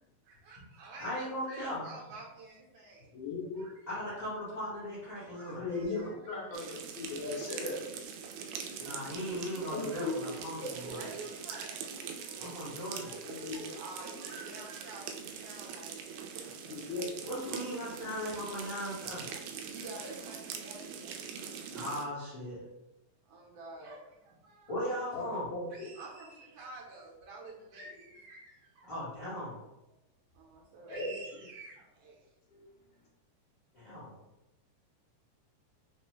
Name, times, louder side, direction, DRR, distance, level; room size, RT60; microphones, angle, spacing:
voice 1, 0.2-3.2 3.5-3.9 4.2-4.3 5.2-6.5 9.7-10.2 10.8-12.8 13.0-16.9 19.3-21.4 21.8-21.9 23.3-24.7 25.7-28.9 30.3-32.3, right 2 dB, 75° right, -4 dB, 2.1 m, -49 dB
voice 2, 1.0-1.8 3.9-6.1 8.8-11.0 12.4-13.1 17.2-19.2 21.7-22.6 24.7-25.4 28.9-29.5 33.7-34.2, equal, 40° left, -9 dB, 0.7 m, -38 dB
voice 3, 3.1-3.7 5.5-7.9 9.7-10.4 13.2-13.8 16.7-17.1 25.1-25.9 30.9-31.1 32.5-32.7, left 3 dB, 75° left, -3 dB, 2.1 m, -37 dB
sound 1, 6.5-22.0, right 7 dB, 90° right, 2.2 m, -43 dB
5.2 x 2.1 x 3.1 m, 0.94 s
omnidirectional pair, 3.7 m